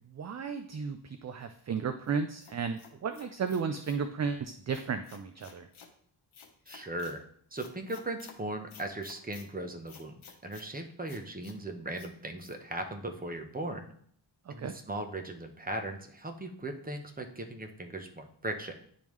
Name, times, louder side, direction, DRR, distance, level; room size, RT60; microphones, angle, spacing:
voice 1, 0.1-5.7 14.5-14.7, right 6 dB, 35° right, 8 dB, 0.4 m, -34 dB
sound 1, 2.1-4.0 4.7-5.9 6.3-7.2 7.6-8.4 8.7-9.5 9.9-10.7 11.1-11.6 11.9-12.1 12.4-12.5, left 6 dB, 75° left, 1.0 m, -53 dB
voice 2, 6.7-7.2 7.5-10.1 10.4-13.9 14.5-18.7, right 1 dB, 20° right, 5 dB, 0.8 m, -38 dB
10.0 x 3.5 x 3.1 m, 0.62 s
wide cardioid pair, 85°, 49 cm